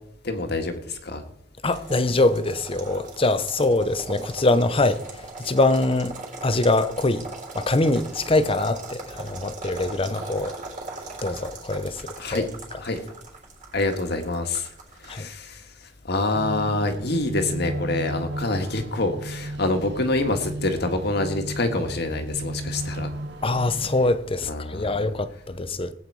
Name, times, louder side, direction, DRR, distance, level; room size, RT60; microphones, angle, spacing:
voice 1, 0.2-1.2 10.0-10.2 12.2-12.5 12.8-13.0 13.7-14.7 15.0-23.1 24.4-24.9, left 2 dB, 60° left, 1.7 m, -26 dB
voice 2, 1.6-7.3 7.5-10.5 11.2-12.5 15.1-15.3 23.4-25.9, left 2 dB, 30° left, 0.8 m, -23 dB
sound 1, 1.7-15.2, right 3 dB, 45° right, 3.7 m, -40 dB
sound 2, 16.3-24.1, right 1 dB, 65° right, 1.1 m, -34 dB
19.0 x 8.8 x 4.7 m
head